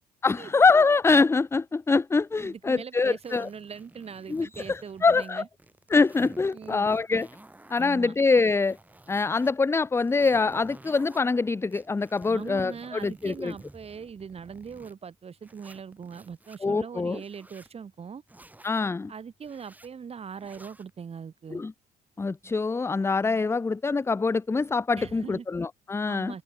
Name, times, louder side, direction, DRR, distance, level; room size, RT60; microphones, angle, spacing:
voice 1, 0.2-3.5 4.3-5.4 5.9-7.3 7.7-8.8 9.1-13.5 16.6-17.2 18.6-19.1 21.5-21.7 22.2-26.3, left 4 dB, 15° left, 0.6 m, -24 dB
voice 2, 2.4-5.5 6.5-6.9 7.8-8.1 12.3-18.2 19.1-21.6 24.9-25.5 26.1-26.4, right 6 dB, 35° right, 4.2 m, -41 dB
sound 1, 3.2-5.3 5.6-7.9 8.3-9.5 9.9-11.2 11.7-14.9 15.4-16.6 17.1-17.7 18.3-18.8 19.4-19.9 20.4-20.9, right 2 dB, 10° right, 2.8 m, -51 dB
cardioid pair, 110°, 17 cm